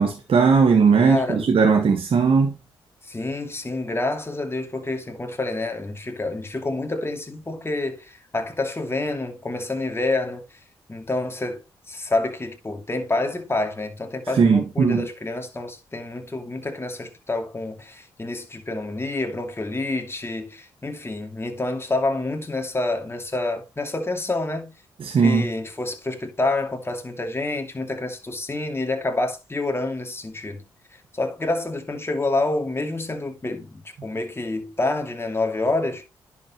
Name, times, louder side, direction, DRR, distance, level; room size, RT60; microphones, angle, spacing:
voice 1, 0.0-2.5 14.3-15.1 25.0-25.5, right 5 dB, 60° right, 1.7 m, -18 dB
voice 2, 1.0-1.4 3.1-10.4 10.9-24.7 25.2-30.6 31.1-36.0, left 2 dB, 25° left, 2.6 m, -28 dB
10.5 x 6.1 x 3.1 m
supercardioid pair, 50°, 10 cm